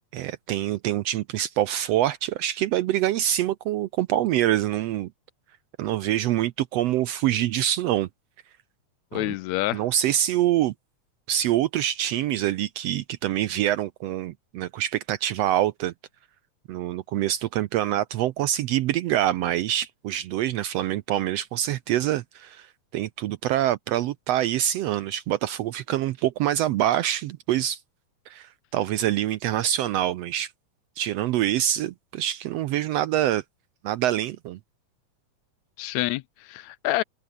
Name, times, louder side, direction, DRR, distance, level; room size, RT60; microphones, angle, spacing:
voice 1, 0.1-5.1 5.8-8.1 9.1-9.3 9.7-10.7 11.3-15.9 16.7-22.7 22.9-27.8 28.3-30.5 31.0-33.4 33.8-34.6, right 12 dB, 75° right, 1.5 m, -25 dB
voice 2, 9.1-9.8 35.8-37.0, left 17 dB, 80° left, 1.7 m, -27 dB
omnidirectional pair, 3.4 m